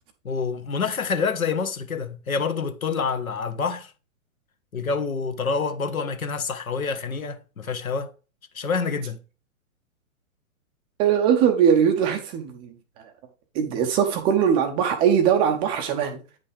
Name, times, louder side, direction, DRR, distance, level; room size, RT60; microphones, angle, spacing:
voice 1, 0.2-3.9 4.7-8.1 8.5-9.2, left 5 dB, 85° left, 1.4 m, -27 dB
voice 2, 11.0-13.1 13.5-16.2, right 8 dB, 15° right, 0.4 m, -21 dB
9.2 x 5.5 x 3.4 m
hypercardioid pair, 130°, 41 cm